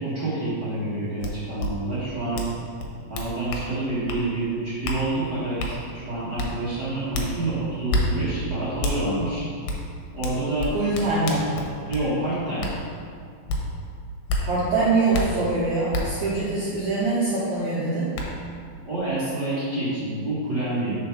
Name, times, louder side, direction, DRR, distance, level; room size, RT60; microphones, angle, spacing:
voice 1, 0.0-2.4 3.1-9.4 10.1-10.7 11.9-12.7 18.8-21.0, right 2 dB, 40° right, -12 dB, 1.5 m, -28 dB
sound 1, 1.2-1.3 1.6-1.7 2.3-2.5 2.8-3.7 4.1-4.2 4.8-5.0 5.6-5.7 6.4-6.5 7.1-7.3 7.9-8.0 8.8-9.0 9.7-9.8 10.2-12.1 12.6-12.7 13.5-13.6 14.3-14.4 15.1-15.2 15.9-16.0 17.5-17.6 18.1-18.3, left 1 dB, 90° left, 2.8 m, -27 dB
voice 2, 10.7-11.5 14.4-18.1, right 3 dB, 65° right, -9 dB, 2.0 m, -24 dB
5.3 x 4.6 x 5.8 m, 2.2 s
omnidirectional pair, 4.3 m